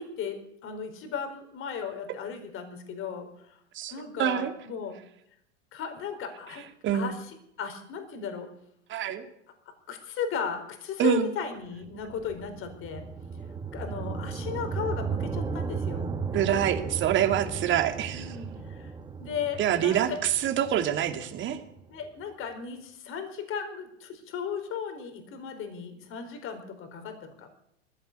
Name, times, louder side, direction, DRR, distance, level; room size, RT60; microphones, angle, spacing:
voice 1, 0.0-3.6 3.9-5.0 5.7-6.6 6.9-8.5 9.9-13.0 13.7-16.1 18.1-18.9 19.2-20.2 21.9-27.5, left 6 dB, 35° left, 7 dB, 4.5 m, -36 dB
voice 2, 3.7-4.5 6.8-7.1 8.9-9.2 11.0-11.3 16.3-18.4 19.6-21.6, right 10 dB, 35° right, 6 dB, 2.8 m, -26 dB
sound 1, 11.8-22.1, right 5 dB, 10° right, 1.6 m, -35 dB
20.0 x 15.5 x 8.5 m, 0.76 s
hypercardioid pair, 105°, 35 cm